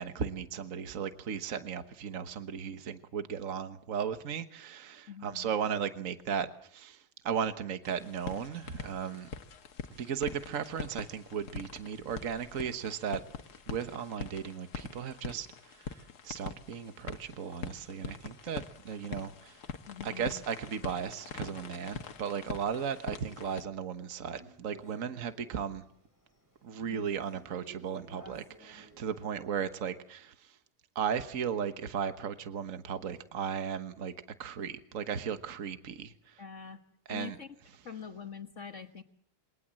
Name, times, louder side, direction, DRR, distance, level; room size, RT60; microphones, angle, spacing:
voice 1, 0.0-9.3 9.9-13.2 13.7-19.6 20.0-25.8 26.6-30.5 30.9-34.1 34.4-36.4 37.1-37.4, right 7 dB, 55° right, 9 dB, 1.6 m, -36 dB
voice 2, 5.1-5.5 19.9-20.4 36.4-36.8 37.1-37.5 37.8-39.0, left 7 dB, 50° left, 6 dB, 1.7 m, -44 dB
sound 1, 7.8-23.6, left 6 dB, 70° left, 1.9 m, -44 dB
Male speech man speaking, 21.0-29.5, right 1 dB, 10° right, 7.8 m, -56 dB
27.5 x 23.5 x 7.7 m, 0.65 s
omnidirectional pair, 1.7 m